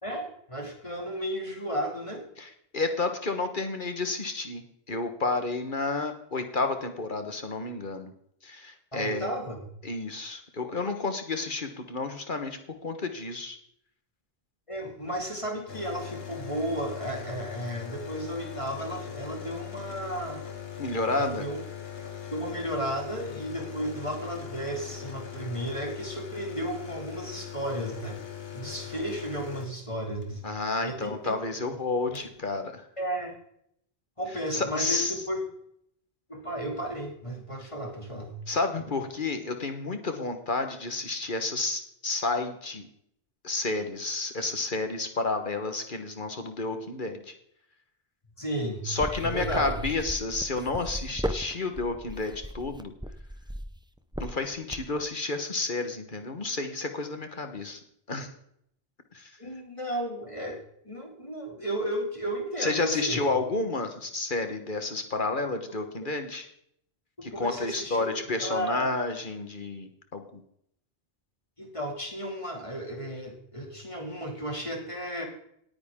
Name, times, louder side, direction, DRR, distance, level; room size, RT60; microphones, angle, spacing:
voice 1, 0.0-2.2 8.9-9.6 14.7-20.4 21.1-21.6 22.3-28.2 28.5-30.4 30.8-31.3 31.7-31.8 32.1-32.2 33.0-33.3 34.2-35.4 36.3-38.3 48.4-48.9 49.2-49.7 59.4-60.6 60.8-63.2 66.0-66.1 67.3-68.9 71.6-75.3, right 1 dB, 30° left, 1 dB, 2.8 m, -34 dB
voice 2, 2.4-8.1 8.4-9.3 9.8-13.6 20.8-21.5 30.4-32.8 34.5-35.1 38.5-42.9 43.4-47.3 48.8-52.9 54.2-57.8 58.1-58.3 59.1-59.3 62.6-66.5 67.2-70.4, left 3 dB, 55° left, 7 dB, 1.5 m, -31 dB
sound 1, 15.7-30.3 31.6-31.7 31.9-32.3, left 8 dB, 75° left, 2.0 m, -40 dB
sound 2, 49.0-55.0, equal, 5° right, 0.7 m, -35 dB
18.5 x 9.5 x 3.7 m, 0.70 s
omnidirectional pair, 1.0 m